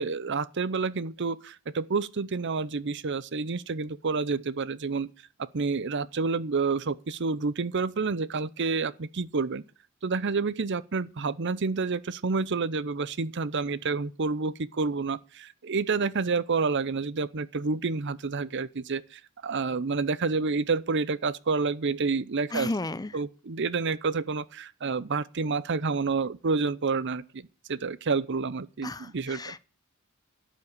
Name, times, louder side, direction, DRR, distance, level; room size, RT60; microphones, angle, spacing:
voice 1, 0.0-5.1 5.5-9.6 10.0-22.7 23.1-29.5, right 4 dB, 55° right, 0.7 m, -29 dB
voice 2, 22.5-23.1 28.8-29.6, left 2 dB, 20° left, 0.6 m, -33 dB
11.5 x 7.3 x 9.6 m
head